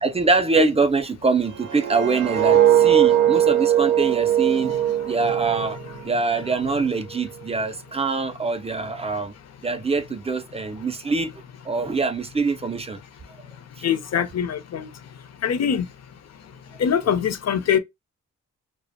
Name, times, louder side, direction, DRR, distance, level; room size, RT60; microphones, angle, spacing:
voice 1, 0.0-4.7 5.0-5.8 6.0-9.3 9.6-11.3 11.6-13.0, right 3 dB, 20° right, 0.4 m, -24 dB
sound 1, 1.5-6.5 6.9-7.2, right 11 dB, 80° right, 0.5 m, -20 dB
voice 2, 13.8-14.9 15.4-15.9 16.8-17.8, left 8 dB, 55° left, 0.6 m, -23 dB
2.4 x 2.0 x 2.5 m
cardioid pair, 80°, 31 cm